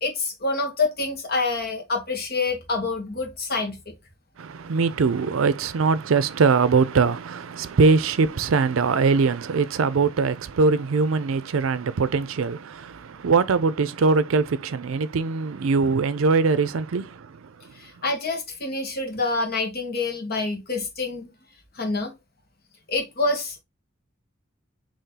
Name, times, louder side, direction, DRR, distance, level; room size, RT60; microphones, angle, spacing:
voice 1, 0.0-3.8 17.8-21.3 21.8-22.1 22.9-23.6, left 3 dB, 50° left, 1.4 m, -27 dB
voice 2, 4.4-17.7, right 4 dB, 85° right, 0.5 m, -22 dB
4.2 x 3.1 x 3.8 m
head